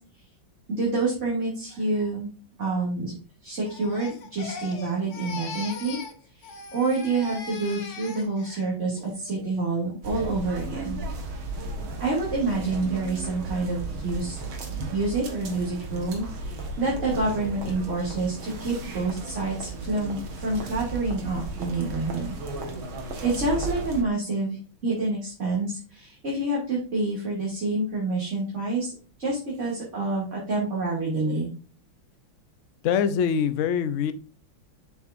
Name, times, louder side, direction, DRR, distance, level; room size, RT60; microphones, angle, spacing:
voice 1, 0.7-2.3 2.6-3.1 3.4-6.0 6.4-11.0 12.0-14.4 14.9-22.3 23.2-31.5, right 3 dB, 35° right, -6 dB, 2.8 m, -28 dB
Crying sobbing, 3.6-6.2 6.4-8.6 9.0-9.4, left 4 dB, 45° left, 1.1 m, -40 dB
sound 1, 10.0-24.0, right 2 dB, 85° right, 2.3 m, -35 dB
voice 2, 32.8-34.1, left 7 dB, 65° left, 12 dB, 0.7 m, -23 dB
7.2 x 6.9 x 2.6 m, 0.38 s
omnidirectional pair, 2.2 m